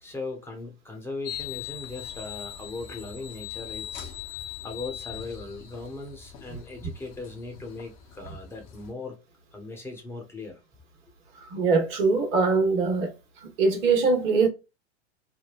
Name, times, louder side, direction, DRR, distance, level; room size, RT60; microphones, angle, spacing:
voice 1, 0.0-9.2 9.5-10.6, left 3 dB, 5° left, 1.0 m, -39 dB
sound 1, 1.2-8.9, left 10 dB, 35° left, 0.9 m, -41 dB
voice 2, 11.5-13.1 13.6-14.5, right 4 dB, 60° right, 1.3 m, -22 dB
3.5 x 2.1 x 2.3 m
hypercardioid pair, 95°, 34 cm